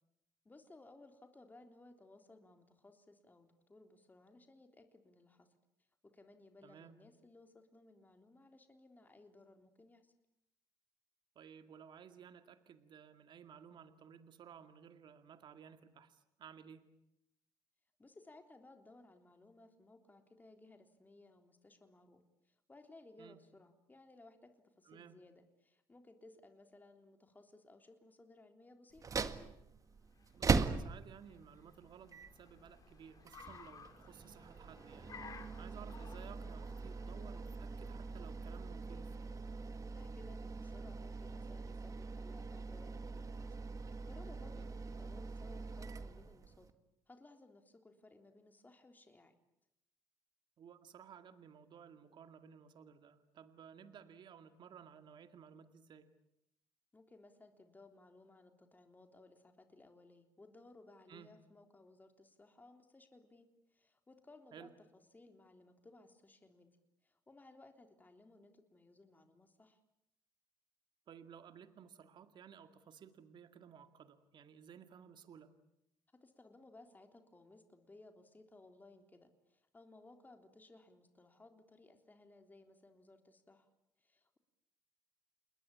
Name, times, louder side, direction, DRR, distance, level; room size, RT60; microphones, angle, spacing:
voice 1, 0.5-5.5 6.0-10.1 18.0-29.0 39.8-46.7 47.1-49.3 56.9-66.7 67.0-69.8 76.2-83.7 84.0-84.4, left 2 dB, 20° left, 6 dB, 3.5 m, -61 dB
voice 2, 6.6-6.9 11.4-16.9 23.2-23.4 24.8-25.2 30.4-39.1 44.5-44.7 50.6-56.1 61.1-61.3 64.5-64.7 71.1-75.5, right 8 dB, 55° right, 9 dB, 2.1 m, -56 dB
sound 1, 28.9-46.7, right 4 dB, 40° right, 1.9 m, -41 dB
Car, 29.8-40.0, left 6 dB, 40° left, 3.0 m, -59 dB
28.5 x 21.0 x 8.6 m, 0.81 s
supercardioid pair, 80°, 9 cm